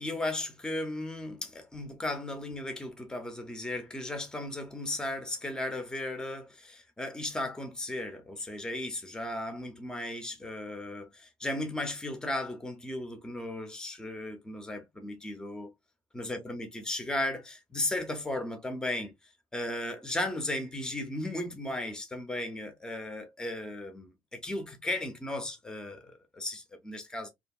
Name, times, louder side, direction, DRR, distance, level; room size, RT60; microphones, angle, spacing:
voice 1, 0.0-15.7 16.1-27.3, left 1 dB, 5° left, 0.6 m, -36 dB
2.7 x 2.6 x 2.3 m
cardioid pair, 120°, 9 cm